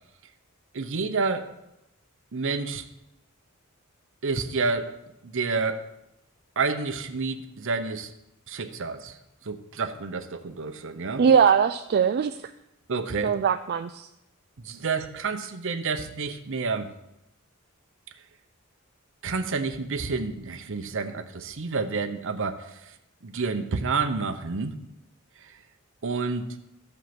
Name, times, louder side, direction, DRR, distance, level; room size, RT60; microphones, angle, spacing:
voice 1, 0.7-1.5 2.3-2.9 4.2-4.9 5.2-5.8 6.6-8.1 8.5-9.2 9.4-11.2 12.9-13.3 14.6-16.9 19.2-22.9 23.2-24.8 25.4-25.5 26.0-26.5, right 4 dB, 65° right, 7 dB, 0.8 m, -29 dB
voice 2, 11.2-12.4 13.2-14.1, right 7 dB, 50° right, 10 dB, 0.3 m, -21 dB
13.5 x 5.3 x 6.0 m, 0.88 s
head